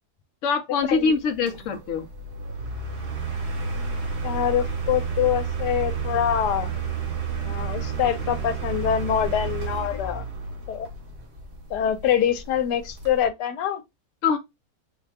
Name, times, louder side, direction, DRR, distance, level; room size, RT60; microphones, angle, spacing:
voice 1, 0.4-2.1 14.2-14.4, left 5 dB, 65° left, 0.8 m, -23 dB
sound 1, 0.8-13.3, right 5 dB, 80° right, 2.0 m, -31 dB
voice 2, 4.2-6.8 7.4-10.2 10.7-10.9 11.7-13.8, left 9 dB, 90° left, 1.3 m, -25 dB
3.9 x 2.3 x 4.5 m
omnidirectional pair, 1.7 m